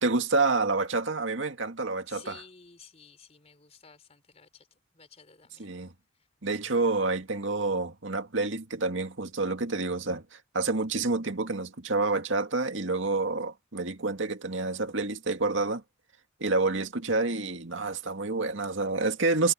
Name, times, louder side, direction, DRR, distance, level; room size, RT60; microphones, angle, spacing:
voice 1, 0.0-2.4 5.6-5.9 6.4-10.2 10.5-15.8 16.4-19.5, right 3 dB, 80° right, 2.0 m, -28 dB
voice 2, 2.1-5.7 19.2-19.5, left 5 dB, 35° left, 4.4 m, -53 dB
head